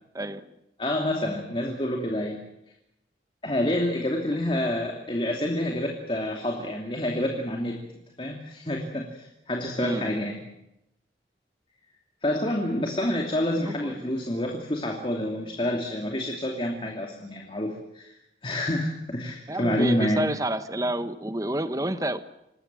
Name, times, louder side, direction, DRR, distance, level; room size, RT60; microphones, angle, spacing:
voice 1, 0.1-0.5 9.7-10.1 13.6-14.0 19.5-22.2, right 1 dB, 20° right, 11 dB, 1.1 m, -29 dB
voice 2, 0.8-2.4 3.4-7.8 8.2-10.4 12.2-18.1 18.4-20.3, left 1 dB, 30° left, 1 dB, 2.7 m, -28 dB
26.5 x 20.0 x 7.6 m, 0.87 s
head